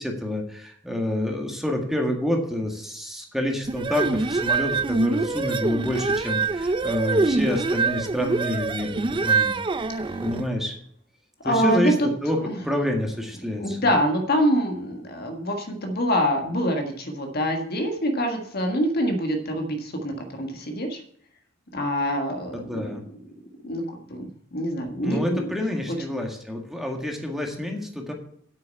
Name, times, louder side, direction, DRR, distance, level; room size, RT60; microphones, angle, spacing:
voice 1, 0.0-9.6 10.2-10.7 11.4-12.4 12.6-13.8 22.5-23.0 25.0-28.1, left 1 dB, ahead, 2 dB, 1.8 m, -28 dB
sound 1, 3.7-10.5, right 3 dB, 25° right, 0.5 m, -25 dB
voice 2, 11.4-12.1 12.4-12.6 13.6-21.0 21.7-22.9 23.6-23.8 24.1-25.5, equal, 55° left, 4 dB, 1.7 m, -25 dB
8.4 x 6.8 x 8.4 m, 0.65 s
head